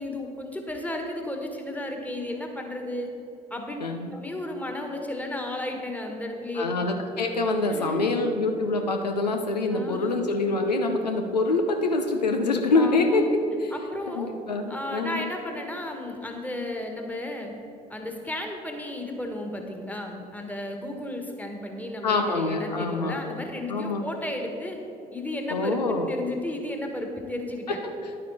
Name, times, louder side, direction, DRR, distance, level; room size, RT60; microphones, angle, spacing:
voice 1, 0.0-3.1 3.5-3.8 4.1-6.7 7.7-8.2 9.7-10.2 12.8-13.2 13.7-14.3 14.7-17.5 17.9-24.8 25.1-27.8, left 1 dB, 5° left, 3 dB, 1.6 m, -33 dB
voice 2, 3.8-4.1 6.5-13.2 13.6-13.7 14.1-15.3 22.0-23.2 23.7-24.0 25.5-26.1 28.0-28.1, left 3 dB, 85° left, 4 dB, 0.6 m, -25 dB
10.5 x 9.2 x 4.1 m, 2.8 s
figure-of-eight pair, 50°, 21 cm